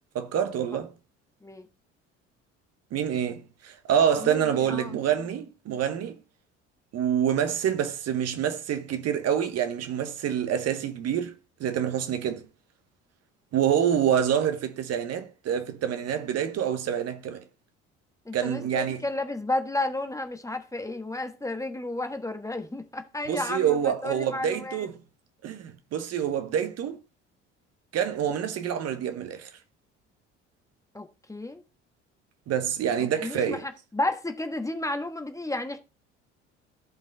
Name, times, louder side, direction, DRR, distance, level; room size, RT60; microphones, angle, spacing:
voice 1, 0.1-0.9 2.9-6.2 6.9-11.3 11.6-12.4 13.5-17.4 18.3-19.0 23.3-24.9 25.4-27.0 27.9-29.5 32.5-33.6, right 9 dB, 45° right, 1.2 m, -27 dB
voice 2, 4.2-5.0 18.2-24.9 30.9-31.6 33.1-35.8, left 2 dB, 10° left, 1.4 m, -32 dB
14.5 x 5.4 x 3.9 m
figure-of-eight pair, 55°, 36 cm